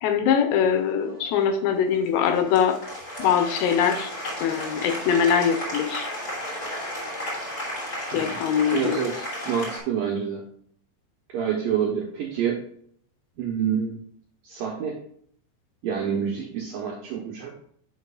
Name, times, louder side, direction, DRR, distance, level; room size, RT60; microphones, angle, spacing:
voice 1, 0.0-2.8 3.2-4.1 4.4-6.1 8.1-9.0, left 7 dB, 80° left, 6 dB, 2.8 m, -22 dB
Applause, 0.7-9.8, equal, 25° left, 2.8 m, -34 dB
voice 2, 8.7-10.4 11.3-12.6 13.4-14.0 14.4-15.0 15.8-17.5, right 8 dB, 75° right, -1 dB, 2.0 m, -27 dB
11.0 x 6.4 x 2.4 m, 0.64 s
omnidirectional pair, 5.2 m